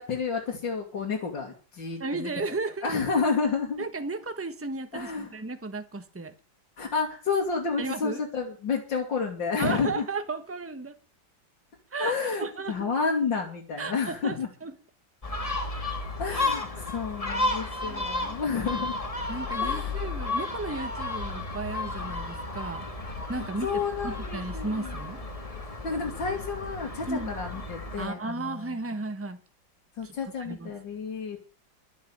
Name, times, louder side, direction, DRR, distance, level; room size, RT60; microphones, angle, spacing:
voice 1, 0.0-2.3 2.8-3.8 4.9-5.3 6.8-10.0 12.0-14.5 16.2-19.0 19.6-19.9 23.3-25.0 25.8-28.8 30.0-31.4, left 5 dB, 75° left, 3.0 m, -30 dB
voice 2, 2.0-2.9 3.8-6.3 7.8-8.2 9.6-11.0 11.9-12.9 13.8-14.7 16.3-16.4 16.8-16.9 17.2-17.3 17.8-18.4 19.3-22.9 23.3-25.2 27.1-27.3 28.0-29.4 30.0-30.7, right 3 dB, 10° right, 1.0 m, -34 dB
Gull seagull, 15.2-28.1, left 2 dB, 20° left, 1.7 m, -33 dB
12.0 x 9.1 x 8.6 m
omnidirectional pair, 2.0 m